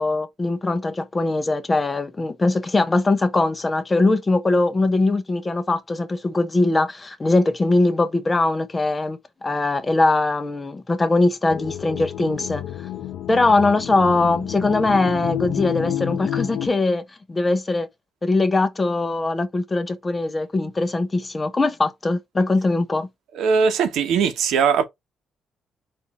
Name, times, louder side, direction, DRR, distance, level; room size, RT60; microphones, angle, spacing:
voice 1, 0.0-12.6 13.3-17.9 18.2-23.1, left 2 dB, 25° left, 0.8 m, -21 dB
sound 1, 11.5-16.7, left 11 dB, 75° left, 0.7 m, -29 dB
voice 2, 23.3-24.8, right 6 dB, 80° right, 0.9 m, -20 dB
4.3 x 2.6 x 4.1 m
cardioid pair, 90°, 0 cm